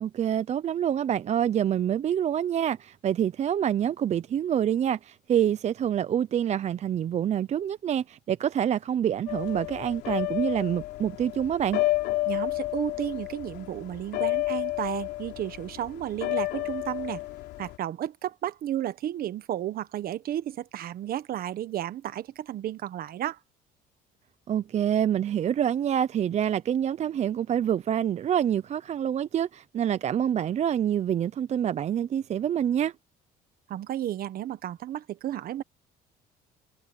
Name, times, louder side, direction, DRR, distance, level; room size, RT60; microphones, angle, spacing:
voice 1, 0.0-11.8 24.5-32.9, right 9 dB, 40° right, 0.5 m, -26 dB
sound 1, 9.3-17.8, left 18 dB, 85° left, 3.2 m, -31 dB
voice 2, 12.3-17.2 17.6-23.4 33.7-35.6, right 12 dB, 60° right, 1.3 m, -33 dB
cardioid pair, 110°, 17 cm